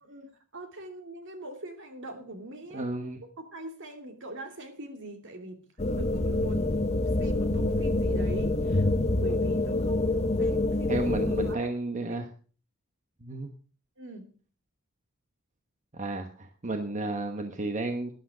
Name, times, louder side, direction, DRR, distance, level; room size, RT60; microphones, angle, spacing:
voice 1, 0.0-2.9 3.4-5.6 6.0-11.1 11.4-11.7 12.1-12.2 14.0-14.3, right 1 dB, 60° right, 5 dB, 2.6 m, -42 dB
voice 2, 2.7-3.2 10.9-12.3 13.2-13.5 15.9-18.1, right 2 dB, 35° right, 5 dB, 1.1 m, -32 dB
sound 1, 5.8-11.6, left 2 dB, 30° left, 0.9 m, -26 dB
12.5 x 11.0 x 5.0 m, 0.40 s
head